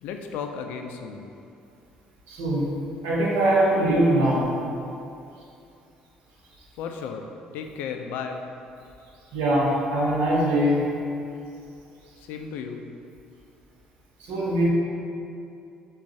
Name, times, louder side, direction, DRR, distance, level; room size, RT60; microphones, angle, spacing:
voice 1, 0.0-1.3 6.8-7.2 7.5-8.4 12.2-12.8, left 6 dB, 80° left, 4 dB, 0.3 m, -34 dB
voice 2, 2.3-2.7 3.0-4.5 9.3-10.9 14.2-14.7, right 1 dB, 80° right, -5 dB, 0.9 m, -22 dB
6.1 x 2.4 x 2.6 m, 2.6 s
supercardioid pair, 80°, 3 cm